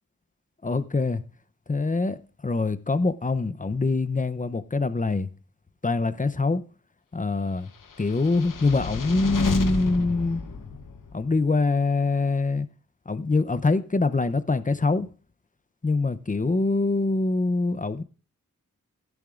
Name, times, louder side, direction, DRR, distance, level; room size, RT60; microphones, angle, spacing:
voice 1, 0.6-1.2 1.7-5.3 5.8-6.6 7.1-7.7 8.0-10.5 11.1-12.7 13.1-15.1 15.8-18.0, left 3 dB, 25° left, 0.6 m, -24 dB
sound 1, 7.9-11.3, left 5 dB, 75° left, 1.0 m, -31 dB
15.0 x 10.5 x 2.5 m
wide cardioid pair, 95°, 32 cm